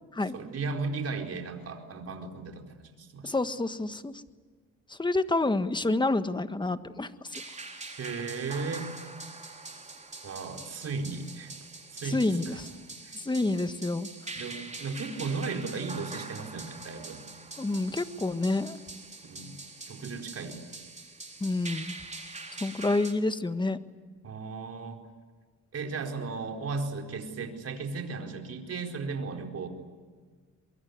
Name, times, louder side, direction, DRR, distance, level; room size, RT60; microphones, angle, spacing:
voice 1, 0.3-3.4 8.0-8.9 10.2-11.5 11.9-12.6 13.0-13.2 14.3-17.2 19.2-19.5 19.9-20.6 24.2-25.0 25.7-29.7, right 4 dB, 55° right, 3 dB, 4.6 m, -35 dB
voice 2, 3.2-4.2 4.9-7.4 12.0-12.7 13.1-14.1 17.6-18.8 21.4-22.0 22.6-23.8, left 2 dB, 15° left, 10 dB, 1.5 m, -28 dB
sound 1, 7.3-23.1, right 3 dB, 25° right, 4.0 m, -44 dB
24.0 x 23.5 x 9.7 m, 1.5 s
cardioid pair, 90°, 30 cm